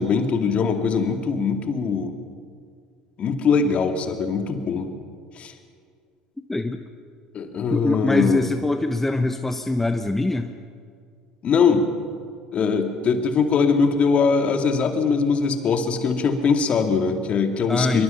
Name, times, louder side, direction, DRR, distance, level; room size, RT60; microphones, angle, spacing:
voice 1, 0.0-2.1 3.2-4.9 5.4-5.5 7.3-8.4 11.4-11.9 12.5-18.0, left 5 dB, 40° left, 6 dB, 2.5 m, -21 dB
voice 2, 6.5-6.8 7.7-10.5 17.7-18.0, left 2 dB, 10° left, 7 dB, 1.1 m, -23 dB
24.5 x 23.5 x 5.8 m, 2.2 s
hypercardioid pair, 70°, 3 cm